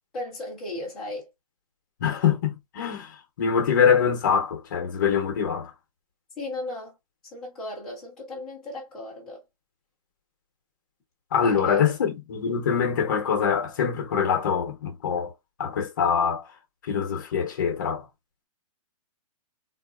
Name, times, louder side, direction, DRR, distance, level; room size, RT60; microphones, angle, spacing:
voice 1, 0.1-1.3 6.4-7.0 7.2-9.4 11.3-11.9, left 2 dB, ahead, 0.3 m, -36 dB
voice 2, 2.0-3.1 3.4-5.7 11.3-15.3 15.6-16.5 16.8-18.0, left 7 dB, 35° left, 0.7 m, -24 dB
3.7 x 2.3 x 2.3 m
hypercardioid pair, 175°, 19 cm